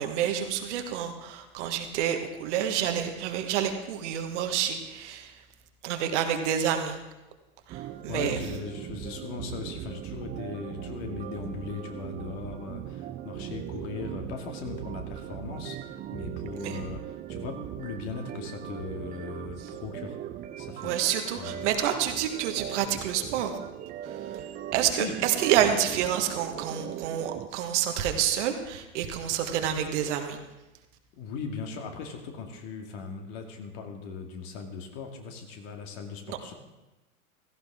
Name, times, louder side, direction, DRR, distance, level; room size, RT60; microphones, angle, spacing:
voice 1, 0.0-5.3 5.8-7.0 7.7-8.4 16.6-16.8 20.8-23.6 24.1-24.4 24.7-30.4 36.3-36.4, right 9 dB, 50° right, 6 dB, 1.6 m, -28 dB
sound 1, 7.7-27.5, right 11 dB, 20° right, 0.5 m, -39 dB
voice 2, 8.1-20.2 20.6-20.9 21.4-21.7 25.0-25.2 31.2-36.5, left 5 dB, 50° left, 4 dB, 2.3 m, -38 dB
16.0 x 14.5 x 3.7 m, 1.0 s
hypercardioid pair, 105°, 43 cm